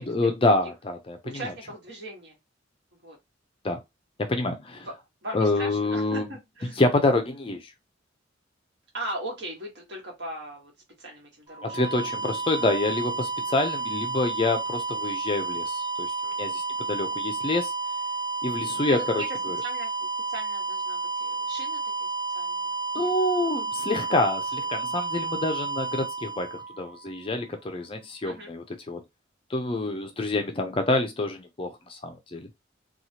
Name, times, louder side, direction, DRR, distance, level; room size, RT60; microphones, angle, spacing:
voice 1, 0.0-1.5 3.6-3.8 4.2-4.9 5.3-6.3 6.6-7.7 11.6-17.7 18.4-19.6 22.9-29.0 29.5-32.5, left 2 dB, 30° left, 0.4 m, -27 dB
voice 2, 1.2-2.4 3.0-3.2 5.2-6.8 8.9-10.7 11.0-11.8 13.4-13.5 18.9-19.0 19.6-22.1 22.3-22.7 23.0-23.1 24.3-24.4 28.2-28.5, right 1 dB, 60° right, 1.4 m, -39 dB
sound 1, 11.5-27.3, right 4 dB, 25° right, 0.6 m, -31 dB
2.8 x 2.3 x 2.8 m
head